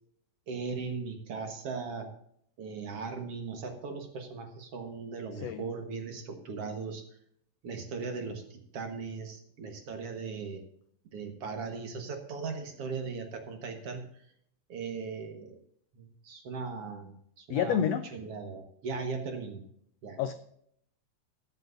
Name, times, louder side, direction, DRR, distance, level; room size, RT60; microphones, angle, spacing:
voice 1, 0.5-2.1 2.6-7.0 7.6-10.6 11.1-14.1 14.7-15.6 15.9-17.8 18.1-19.6 20.0-20.2, right 4 dB, 55° right, 4 dB, 2.0 m, -38 dB
voice 2, 17.5-18.1 20.2-20.3, left 9 dB, 90° left, 9 dB, 1.4 m, -28 dB
22.0 x 8.0 x 2.6 m, 0.68 s
omnidirectional pair, 3.7 m